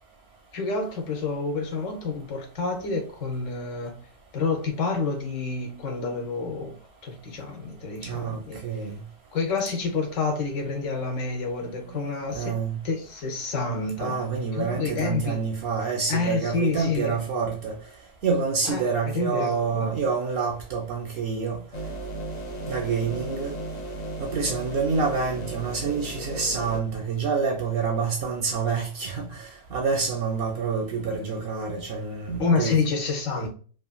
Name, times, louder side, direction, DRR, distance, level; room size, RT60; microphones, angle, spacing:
voice 1, 0.5-4.0 4.3-6.8 7.0-8.6 9.3-12.6 12.8-14.2 14.5-15.4 16.1-17.1 18.6-18.9 19.1-19.9 32.4-33.5, left 4 dB, 75° left, 1.1 m, -28 dB
voice 2, 8.0-8.9 12.3-12.8 14.0-17.7 18.2-21.6 22.7-23.6 24.2-32.7, right 5 dB, 65° right, 0.7 m, -27 dB
sound 1, 21.7-26.8, right 2 dB, 50° left, 0.5 m, -35 dB
3.0 x 2.4 x 2.2 m
omnidirectional pair, 1.4 m